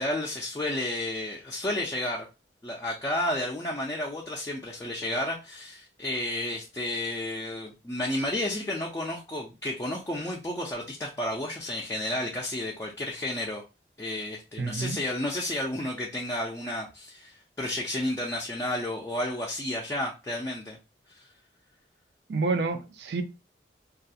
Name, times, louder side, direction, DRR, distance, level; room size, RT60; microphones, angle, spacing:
voice 1, 0.0-2.3 2.6-13.6 14.0-20.8 21.1-21.3, left 1 dB, 15° left, 0.4 m, -32 dB
voice 2, 14.6-15.0 22.3-23.2, right 3 dB, 65° right, 0.4 m, -28 dB
2.3 x 2.1 x 2.6 m
head